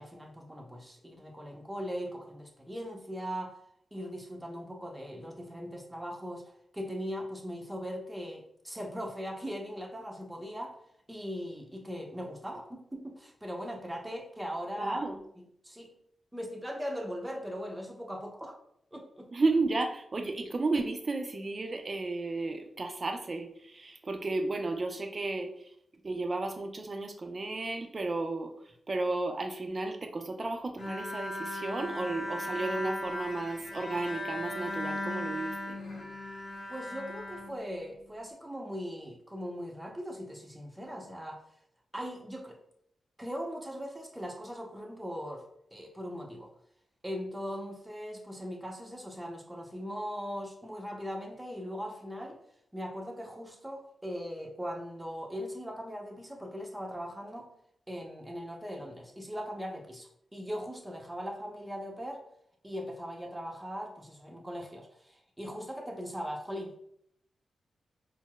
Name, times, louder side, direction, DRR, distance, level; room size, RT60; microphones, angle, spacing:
voice 1, 0.0-3.5 3.9-6.4 6.7-10.8 11.1-15.1 15.4-15.9 16.3-18.6 18.9-19.3 36.7-41.4 41.9-42.6 43.2-45.4 45.7-46.5 47.0-52.4 52.7-57.5 57.9-62.2 62.6-66.8, equal, 15° right, 1 dB, 0.8 m, -39 dB
voice 2, 14.8-15.2 19.3-25.7 26.0-28.5 28.9-35.8, right 3 dB, 45° right, 6 dB, 0.5 m, -33 dB
Bowed string instrument, 30.8-38.2, left 1 dB, 70° left, 0.7 m, -38 dB
4.3 x 2.0 x 2.3 m, 0.70 s
supercardioid pair, 45°, 0 cm